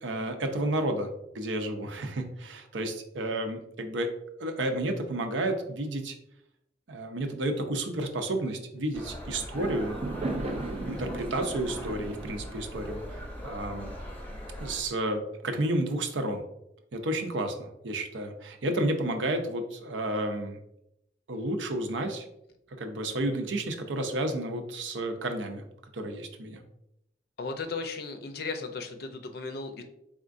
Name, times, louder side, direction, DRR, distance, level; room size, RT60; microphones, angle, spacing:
voice 1, 0.0-4.1 4.4-6.1 6.9-9.9 10.9-13.9 14.6-16.4 16.9-20.6 21.3-22.2 22.7-25.6 25.9-26.6, right 1 dB, 80° right, 5 dB, 0.6 m, -31 dB
sound 1, 8.9-14.8, equal, 10° left, 0.6 m, -40 dB
Fireworks, 9.5-14.0, right 2 dB, 35° right, 0.4 m, -37 dB
voice 2, 27.4-29.8, left 4 dB, 55° left, 6 dB, 0.5 m, -36 dB
4.3 x 3.6 x 2.5 m, 0.81 s
head